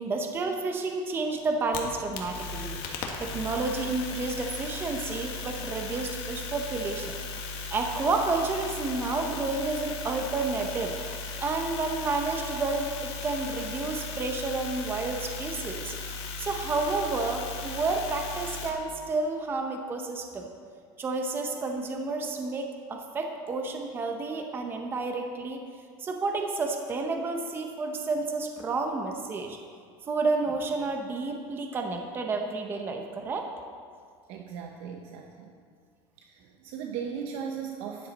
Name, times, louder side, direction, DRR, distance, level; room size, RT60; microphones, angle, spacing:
voice 1, 0.0-2.8 3.2-7.2 7.7-11.0 11.4-15.9 16.4-20.5 21.0-25.6 26.0-29.6 30.1-33.5, right 3 dB, 20° right, 3 dB, 0.7 m, -30 dB
sound 1, 1.5-18.7, left 3 dB, 50° left, 1.5 m, -37 dB
voice 2, 34.3-35.5 36.2-38.1, right 7 dB, 60° right, 2 dB, 0.9 m, -37 dB
13.0 x 10.0 x 4.0 m, 2.1 s
cardioid pair, 170°, 12 cm